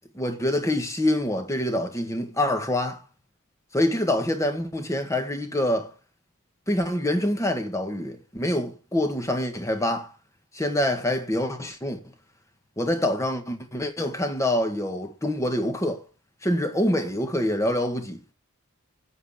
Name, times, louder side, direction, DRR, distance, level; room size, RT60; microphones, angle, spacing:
voice 1, 0.1-3.0 3.7-5.9 6.7-10.1 10.5-12.0 12.8-16.0 16.4-18.2, left 1 dB, 15° left, 1.6 m, -26 dB
8.1 x 7.6 x 8.3 m
head